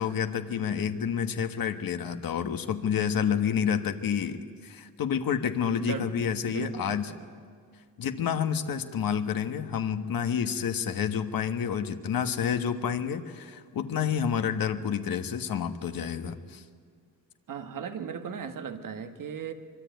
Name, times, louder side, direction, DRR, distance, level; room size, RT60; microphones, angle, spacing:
voice 1, 0.0-7.1 8.0-16.6, left 7 dB, 85° left, 8 dB, 1.5 m, -29 dB
voice 2, 5.8-7.3 17.5-19.5, right 7 dB, 70° right, 7 dB, 1.8 m, -37 dB
25.0 x 23.5 x 9.3 m, 2.1 s
wide cardioid pair, 170°, 34 cm